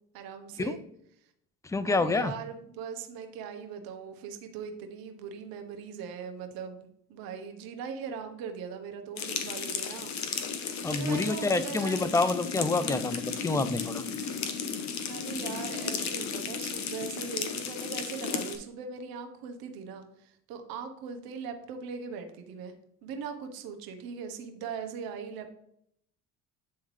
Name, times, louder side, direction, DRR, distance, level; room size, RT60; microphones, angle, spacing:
voice 1, 0.1-0.8 1.8-10.1 10.9-12.1 15.1-22.7 23.0-25.5, right 6 dB, 70° right, 5 dB, 1.1 m, -40 dB
voice 2, 1.6-2.3 10.8-14.0, left 3 dB, 10° left, 13 dB, 0.4 m, -28 dB
sound 1, 9.2-18.6, left 6 dB, 50° left, 1.0 m, -34 dB
9.1 x 3.5 x 3.2 m, 0.71 s
supercardioid pair, 80°, 37 cm